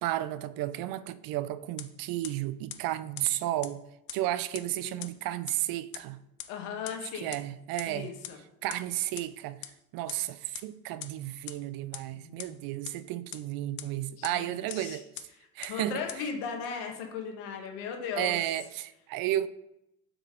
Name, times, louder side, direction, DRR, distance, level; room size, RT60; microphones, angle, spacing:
voice 1, 0.0-3.8 4.1-6.2 7.1-8.1 8.6-9.7 9.9-15.1 15.5-16.0 18.2-19.5, right 14 dB, 60° right, 0.5 m, -33 dB
sound 1, 1.8-1.9 2.2-2.3 2.7-2.8 3.2-3.3 3.6-3.7 4.1-4.2 4.5-4.6 5.0-5.1 5.5-5.6 5.9-6.0 6.4-6.5 6.9-7.0 7.3-7.4 7.8-7.9 8.2-8.3 8.7-8.8 9.2-9.3 9.6-9.7 10.1-10.2 10.5-10.6 11.0-11.1 11.5-11.6 11.9-12.0 12.4-12.5 12.9-13.0 13.3-13.4 13.8-13.9 14.2-14.3 14.7-14.8 15.2-15.3 15.6-15.7 16.1-16.2, left 15 dB, 90° left, 0.7 m, -38 dB
voice 2, 6.5-7.3 7.9-8.4 12.1-12.6 14.1-15.0 15.6-18.4, left 6 dB, 75° left, 1.4 m, -37 dB
6.7 x 4.1 x 3.7 m
supercardioid pair, 105°, 41 cm